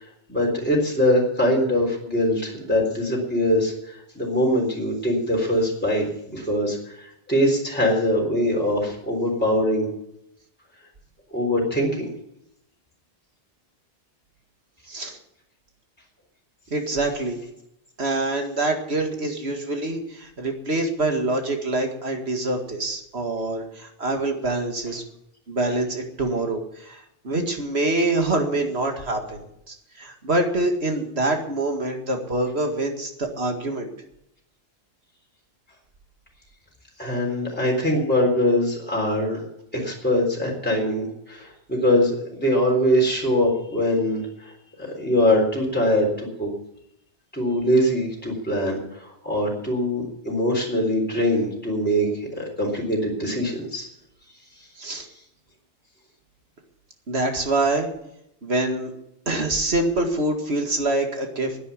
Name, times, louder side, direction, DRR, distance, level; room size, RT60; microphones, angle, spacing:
voice 1, 0.3-6.1 6.3-9.9 11.3-12.1 37.0-39.4 39.7-44.5 44.8-46.5 47.3-53.8, equal, 10° left, -2 dB, 3.7 m, -22 dB
voice 2, 14.9-15.2 16.7-17.4 18.0-25.0 25.5-33.9 54.8-55.1 57.1-57.9 58.4-58.9 59.3-61.6, right 2 dB, 65° right, 4 dB, 2.3 m, -25 dB
11.0 x 9.7 x 9.6 m, 0.79 s
omnidirectional pair, 1.2 m